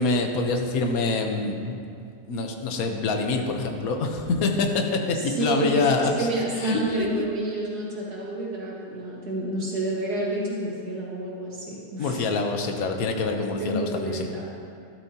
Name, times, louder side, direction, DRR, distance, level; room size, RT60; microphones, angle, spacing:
voice 1, 0.0-1.8 2.3-6.3 6.6-6.8 12.0-14.3, left 3 dB, 65° left, 3 dB, 1.4 m, -25 dB
voice 2, 5.1-12.2 13.6-14.4, right 1 dB, 75° right, -5 dB, 2.4 m, -29 dB
13.0 x 12.0 x 2.9 m, 2.3 s
omnidirectional pair, 1.7 m